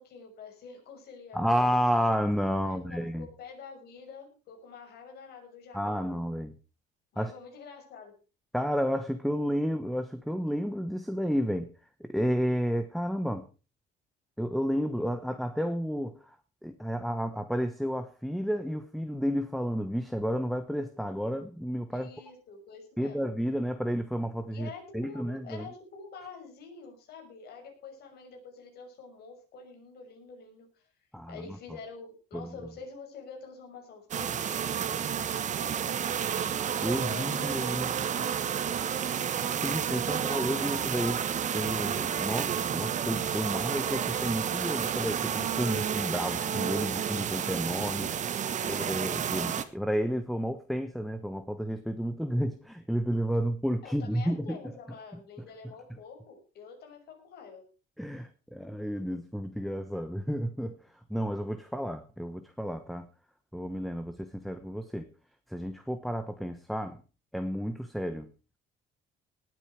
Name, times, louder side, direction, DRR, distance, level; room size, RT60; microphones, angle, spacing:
voice 1, 0.0-1.7 2.6-6.1 7.1-8.2 21.9-23.2 24.5-30.9 31.3-36.3 37.0-38.7 48.4-48.8 53.8-57.6, left 5 dB, 60° left, 3 dB, 6.5 m, -47 dB
voice 2, 1.3-3.3 5.7-6.5 7.2-7.3 8.5-11.7 12.0-13.5 14.4-16.2 16.6-22.1 23.0-25.7 31.1-31.4 32.3-32.5 36.8-37.9 39.6-41.2 41.5-48.1 48.7-54.8 55.4-55.5 58.0-60.8 61.1-63.1 63.5-65.1 65.5-67.0 67.3-68.3, equal, ahead, 9 dB, 1.0 m, -31 dB
sound 1, 34.1-49.6, right 8 dB, 40° right, 1.4 m, -31 dB
19.0 x 9.2 x 4.8 m, 0.34 s
cardioid pair, 140°, 19 cm